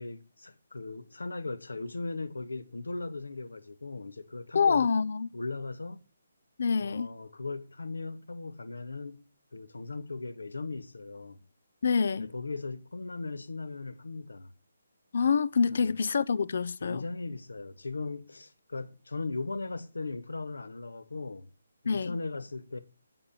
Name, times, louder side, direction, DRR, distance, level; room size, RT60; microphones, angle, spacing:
voice 1, 0.0-4.9 5.3-6.0 6.8-9.2 9.5-11.4 12.2-14.5 15.7-15.9 16.8-21.5 21.8-22.8, left 3 dB, 75° left, 1.4 m, -38 dB
voice 2, 4.5-5.3 6.6-7.1 11.8-12.3 15.1-17.0 21.9-22.2, left 5 dB, 55° left, 0.6 m, -26 dB
8.2 x 7.8 x 7.1 m
figure-of-eight pair, 145°, 0 cm